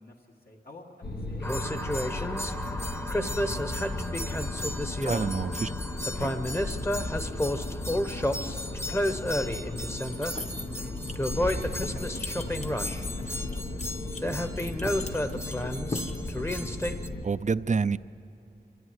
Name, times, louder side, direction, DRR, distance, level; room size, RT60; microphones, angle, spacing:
voice 1, 0.0-4.5 5.0-5.4 7.1-15.9, left 1 dB, 65° left, -2 dB, 1.8 m, -51 dB
sound 1, 1.0-17.2, left 2 dB, 85° left, 1.1 m, -36 dB
sound 2, 1.4-17.1, left 1 dB, 15° left, 0.9 m, -31 dB
voice 2, 5.0-5.7 6.2-6.4 17.2-18.0, right 5 dB, 45° right, 15 dB, 0.4 m, -28 dB
sound 3, 10.1-17.0, left 2 dB, 45° left, 1.2 m, -40 dB
25.5 x 13.5 x 9.6 m, 3.0 s
wide cardioid pair, 75°, 17 cm